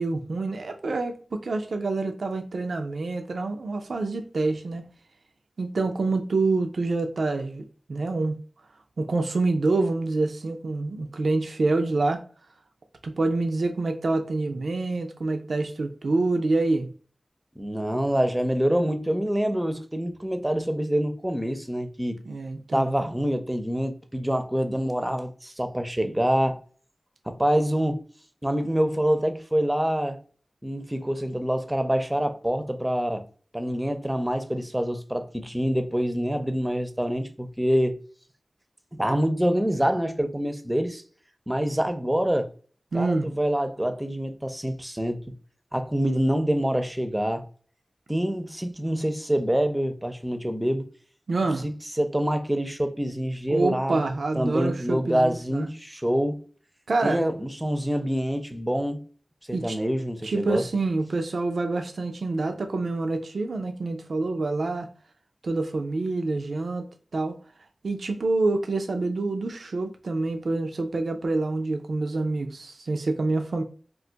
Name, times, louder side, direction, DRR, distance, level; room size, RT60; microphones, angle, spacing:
voice 1, 0.0-4.8 5.6-8.4 9.0-12.2 13.0-16.9 22.3-22.9 42.9-43.3 51.3-51.7 53.5-55.7 56.9-57.2 59.5-59.8 60.2-64.9 65.4-66.8 67.1-67.4 67.8-73.6, right 3 dB, 90° right, 0.4 m, -27 dB
voice 2, 17.6-22.2 22.7-26.6 27.3-28.0 28.4-30.2 30.6-33.2 33.5-38.0 38.9-41.0 41.5-42.5 42.9-45.2 45.7-47.4 48.1-50.8 51.6-56.4 57.0-59.0 59.5-60.6, equal, 15° right, 0.5 m, -26 dB
2.4 x 2.3 x 3.8 m
cardioid pair, 45°, 0 cm